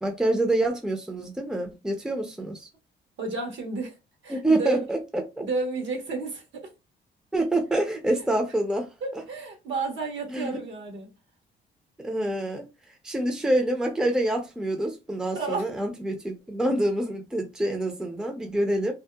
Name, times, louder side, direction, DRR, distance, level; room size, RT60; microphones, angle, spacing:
voice 1, 0.0-2.7 4.3-5.5 7.3-9.2 10.3-10.5 12.0-12.7 13.0-18.9, right 1 dB, 5° right, 0.5 m, -26 dB
voice 2, 3.2-4.0 4.2-4.9 5.4-6.7 8.1-8.2 9.0-11.1 15.3-15.6, right 3 dB, 70° right, 1.1 m, -31 dB
2.7 x 2.1 x 2.2 m
cardioid pair, 90°, 20 cm